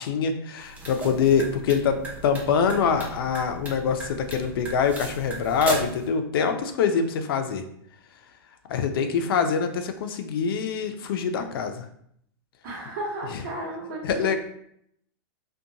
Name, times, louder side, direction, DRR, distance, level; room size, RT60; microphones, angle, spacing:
voice 1, 0.0-2.0 2.2-7.6 8.7-11.9 14.0-14.4, left 6 dB, 65° left, 7 dB, 0.4 m, -24 dB
sound 1, 0.6-6.0, right 2 dB, 10° right, 0.5 m, -36 dB
voice 2, 12.6-14.4, right 1 dB, 45° right, -4 dB, 1.1 m, -34 dB
2.5 x 2.2 x 2.7 m, 0.70 s
hypercardioid pair, 145°, 13 cm